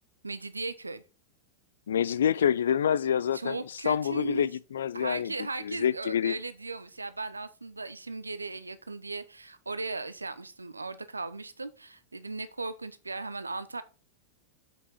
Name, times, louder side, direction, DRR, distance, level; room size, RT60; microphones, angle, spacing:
voice 1, 0.2-1.0 3.3-4.5 4.9-13.8, right 3 dB, 80° right, 0.7 m, -37 dB
voice 2, 1.9-3.6 3.8-5.3 5.6-6.3, left 9 dB, 65° left, 0.4 m, -27 dB
7.5 x 6.0 x 4.3 m
figure-of-eight pair, 90°, 0 cm